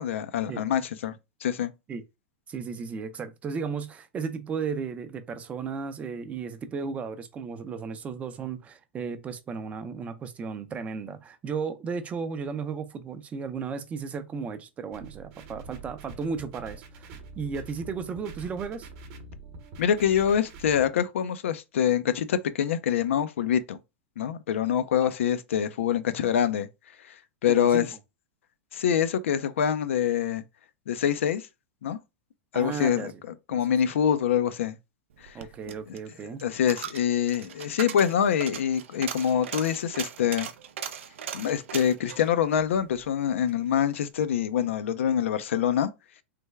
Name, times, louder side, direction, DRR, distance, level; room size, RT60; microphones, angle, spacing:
voice 1, 0.0-1.7 19.8-23.8 24.2-26.7 27.4-27.9 28.7-30.4 30.9-31.4 31.8-32.0 32.5-33.1 33.5-34.8 35.2-35.3 36.4-40.5 41.3-45.9, left 9 dB, 80° left, 0.4 m, -25 dB
voice 2, 2.5-18.9 25.0-25.1 27.5-27.9 32.5-33.2 33.5-33.6 35.3-36.4 45.1-45.2, right 5 dB, 20° right, 0.5 m, -35 dB
sound 1, 14.9-20.9, right 3 dB, 45° right, 0.8 m, -45 dB
Coin (dropping), 35.2-43.6 43.9-44.0, right 8 dB, 80° right, 0.5 m, -39 dB
3.3 x 2.2 x 3.2 m
hypercardioid pair, 130°, 7 cm